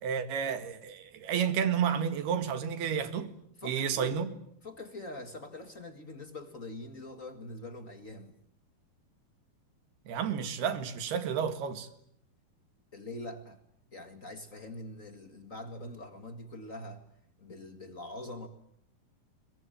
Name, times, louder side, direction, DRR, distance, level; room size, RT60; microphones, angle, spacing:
voice 1, 0.0-3.3 3.6-4.3 10.1-11.9, right 7 dB, 70° right, 3.7 m, -31 dB
voice 2, 3.6-4.2 4.6-8.3 12.9-13.6 13.9-17.0 17.4-18.5, left 1 dB, 40° left, 1.1 m, -43 dB
27.5 x 22.5 x 9.1 m
omnidirectional pair, 4.8 m